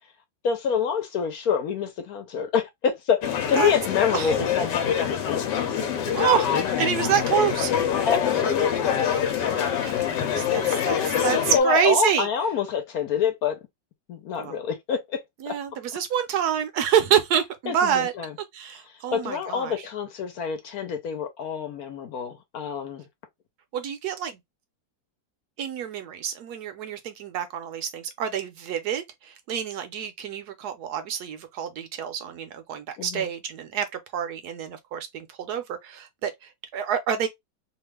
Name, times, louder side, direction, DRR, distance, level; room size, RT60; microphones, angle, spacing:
voice 1, 0.4-3.2 3.5-5.6 8.1-9.0 9.4-9.5 10.2-10.7 11.5-13.6 14.1-15.2 15.5-15.6 17.7-18.3 19.1-23.1 33.0-33.3, left 7 dB, 65° left, 1.1 m, -27 dB
sound 1, 3.2-11.6, left 8 dB, 85° left, 1.3 m, -25 dB
voice 2, 6.1-6.5 6.8-7.7 9.5-12.3 14.4-14.6 15.4-18.1 18.5-19.7 23.7-24.4 25.6-33.9 34.1-37.3, right 9 dB, 75° right, 1.1 m, -27 dB
2.9 x 2.4 x 3.2 m
omnidirectional pair, 1.9 m